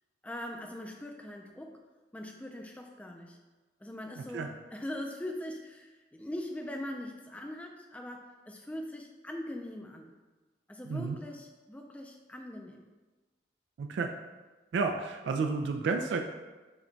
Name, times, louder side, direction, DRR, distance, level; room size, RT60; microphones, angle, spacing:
voice 1, 0.2-1.8 2.1-3.4 3.8-10.1 10.7-12.9, left 1 dB, 10° left, 2 dB, 0.3 m, -41 dB
voice 2, 10.9-11.2 13.8-14.1 14.7-16.2, right 4 dB, 80° right, 4 dB, 0.3 m, -31 dB
5.6 x 2.2 x 3.9 m, 1.2 s
head